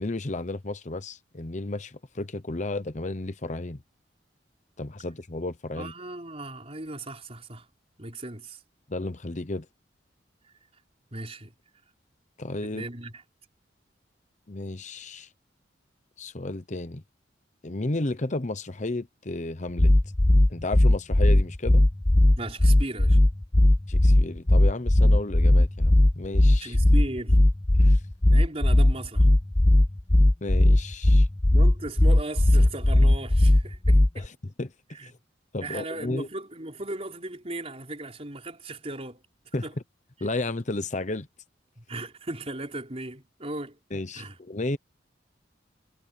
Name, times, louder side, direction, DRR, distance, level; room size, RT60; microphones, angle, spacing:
voice 1, 0.0-3.8 4.8-5.9 8.9-9.7 12.4-12.9 14.5-15.3 16.2-17.0 17.6-19.9 20.5-21.8 23.9-26.8 27.8-28.0 30.4-31.3 34.1-34.3 34.6-34.7 35.0-35.1 35.5-36.3 39.5-39.7 40.2-41.3 43.9-44.8, left 2 dB, 40° left, 0.9 m, -33 dB
voice 2, 5.7-7.7 8.0-8.6 11.1-11.5 12.6-13.2 22.4-23.2 26.6-27.4 28.3-29.3 31.5-34.3 34.9-35.1 35.6-39.2 39.6-39.7 41.8-43.8 44.1-44.4, right 2 dB, 35° right, 4.5 m, -37 dB
sound 1, 19.8-34.3, left 1 dB, 10° left, 0.4 m, -18 dB
head